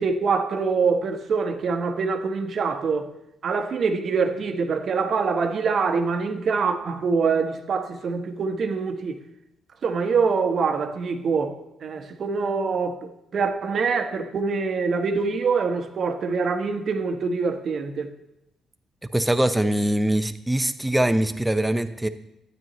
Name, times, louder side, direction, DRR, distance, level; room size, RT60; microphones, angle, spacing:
voice 1, 0.0-3.1 3.4-9.2 9.8-13.0 13.3-18.1, right 5 dB, 55° right, 1.0 m, -24 dB
voice 2, 19.1-22.1, right 1 dB, 10° right, 0.6 m, -22 dB
12.5 x 9.2 x 3.0 m
cardioid pair, 90°, 0 cm